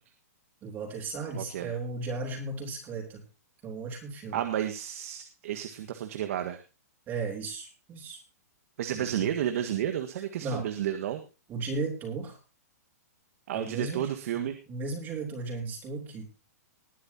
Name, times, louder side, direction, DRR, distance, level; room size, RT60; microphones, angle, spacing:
voice 1, 0.6-3.2 3.6-4.4 7.1-8.2 8.9-9.3 10.4-10.7 11.5-12.4 13.5-16.3, right 3 dB, 20° right, 2 dB, 3.8 m, -35 dB
voice 2, 1.3-1.7 4.3-6.6 8.8-11.2 13.5-14.6, right 11 dB, 55° right, 7 dB, 1.8 m, -31 dB
20.5 x 10.0 x 2.9 m, 0.31 s
hypercardioid pair, 150°, 9 cm